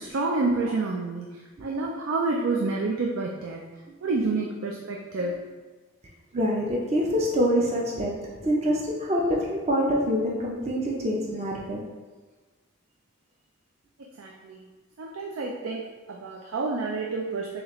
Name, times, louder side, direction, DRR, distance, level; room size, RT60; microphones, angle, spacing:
voice 1, 0.0-3.7 4.0-5.3 14.0-14.6 15.0-17.6, right 3 dB, 75° right, -1 dB, 0.4 m, -29 dB
voice 2, 3.9-4.2 5.2-5.4 6.3-11.8, equal, 30° right, -3 dB, 0.6 m, -26 dB
6.2 x 2.4 x 3.1 m, 1.3 s
head